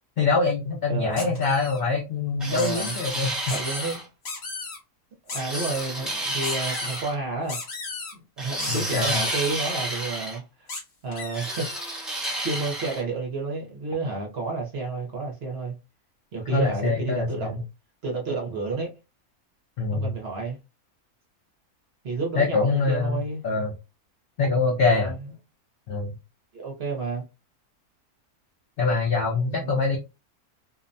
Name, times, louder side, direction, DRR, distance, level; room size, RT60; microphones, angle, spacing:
voice 1, 0.2-3.3 8.7-9.2 16.5-17.6 19.8-20.1 22.4-23.7 24.4-25.2 25.9-26.1 28.8-30.0, left 4 dB, 90° left, 0.4 m, -24 dB
voice 2, 0.9-1.4 2.5-3.0 3.5-4.0 5.3-7.6 8.1-10.7 11.0-11.7 12.4-15.8 16.3-17.6 18.0-18.9 19.9-20.6 22.0-23.4 24.9-25.2 26.5-27.2 29.5-30.0, right 3 dB, 55° right, 0.8 m, -30 dB
sound 1, 1.2-1.8 2.5-3.1 3.5-4.0 4.2-4.8 5.3-5.9 6.4-7.0 7.5-8.1 8.6-9.6 10.7-10.8 11.1-11.9, left 3 dB, 50° left, 0.9 m, -35 dB
sound 2, 2.4-4.0 5.4-7.1 8.4-10.4 11.3-13.0, right 1 dB, ahead, 0.4 m, -31 dB
2.6 x 2.1 x 2.5 m
omnidirectional pair, 1.6 m